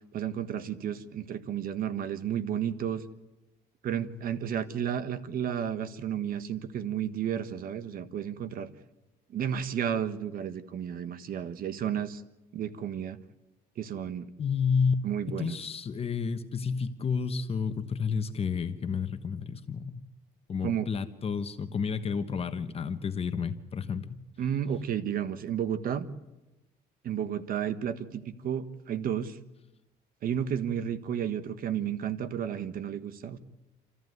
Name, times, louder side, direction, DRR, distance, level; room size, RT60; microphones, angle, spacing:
voice 1, 0.1-3.0 3.8-8.7 9.3-12.2 12.5-13.2 13.8-14.3 15.0-15.6 20.6-20.9 24.4-26.1 27.0-29.4 30.2-33.4, right 9 dB, 60° right, 13 dB, 1.5 m, -32 dB
voice 2, 14.4-20.0 20.5-24.2, left 5 dB, 35° left, 8 dB, 1.3 m, -31 dB
28.0 x 14.5 x 9.5 m, 1.0 s
cardioid pair, 110°, 17 cm